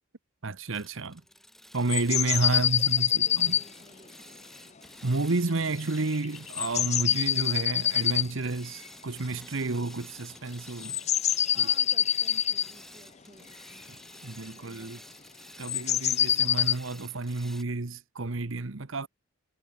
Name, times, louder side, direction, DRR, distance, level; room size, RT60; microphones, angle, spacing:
voice 1, 0.4-1.2 1.7-3.6 5.0-11.0 11.6-11.7 13.9-14.0 14.2-15.0 15.6-19.1, right 3 dB, 70° right, 1.1 m, -31 dB
sound 1, 0.7-17.6, left 1 dB, ahead, 4.7 m, -50 dB
sound 2, 1.9-3.6 6.1-8.3 8.9-9.0 10.8-12.7 15.6-16.7, left 10 dB, 30° left, 0.7 m, -25 dB
voice 2, 2.5-4.4 11.5-14.0 14.5-15.1, right 1 dB, 20° right, 4.6 m, -55 dB
head